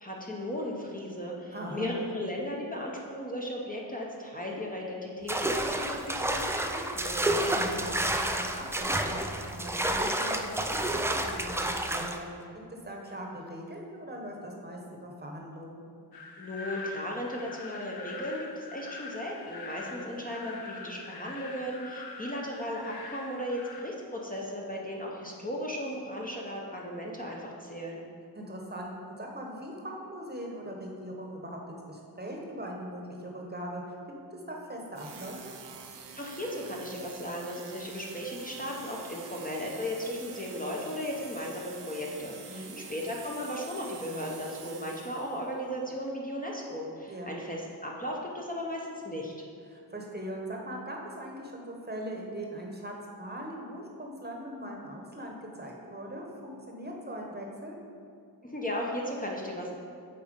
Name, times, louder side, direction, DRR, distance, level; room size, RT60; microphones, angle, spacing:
voice 1, 0.0-7.2 16.4-28.0 36.1-49.5 58.4-59.7, left 1 dB, 20° left, -2 dB, 0.8 m, -36 dB
voice 2, 1.5-1.9 7.5-12.3 12.5-15.8 19.8-20.1 28.3-35.5 42.5-42.8 47.1-47.3 49.7-57.8, right 1 dB, 25° right, 0 dB, 1.0 m, -40 dB
sound 1, 5.3-12.2, right 1 dB, 5° right, 0.3 m, -30 dB
sound 2, 16.1-23.8, left 3 dB, 65° left, 0.8 m, -43 dB
sound 3, 34.9-45.5, right 6 dB, 85° right, 0.8 m, -47 dB
7.7 x 4.2 x 5.2 m, 2.4 s
wide cardioid pair, 100°, 41 cm